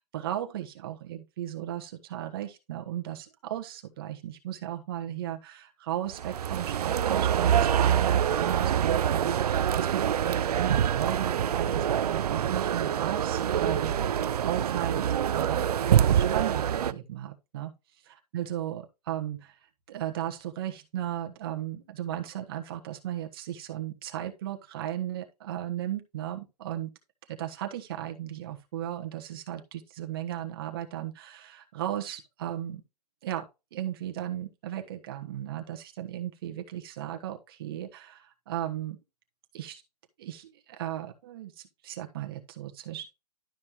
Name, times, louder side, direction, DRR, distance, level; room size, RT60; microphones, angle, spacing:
voice 1, 0.0-17.7 18.0-19.6 19.9-26.9 27.4-32.8 33.2-33.4 33.7-39.0 39.5-39.8 40.2-43.1, right 12 dB, 35° right, 1.3 m, -36 dB
sound 1, 6.1-16.9, right 9 dB, 75° right, 0.5 m, -25 dB
12.0 x 5.3 x 3.1 m
hypercardioid pair, 165°, 20 cm